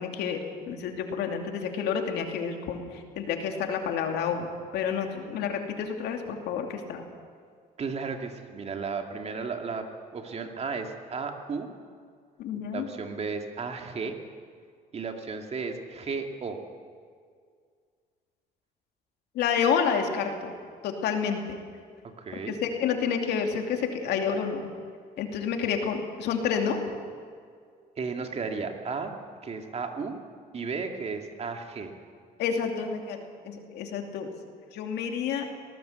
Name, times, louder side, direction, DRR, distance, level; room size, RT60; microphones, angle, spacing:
voice 1, 0.0-7.0 12.4-12.9 19.3-20.5 20.8-21.6 22.5-24.7 25.2-26.8 32.4-34.3 34.7-35.5, left 6 dB, 80° left, 4 dB, 2.7 m, -29 dB
voice 2, 7.8-9.9 10.1-11.7 12.7-14.2 14.9-16.6 22.0-22.6 28.0-29.1 29.4-30.2 30.5-31.9, right 5 dB, 40° right, 4 dB, 2.4 m, -34 dB
19.0 x 18.5 x 8.2 m, 2.1 s
cardioid pair, 110°, 17 cm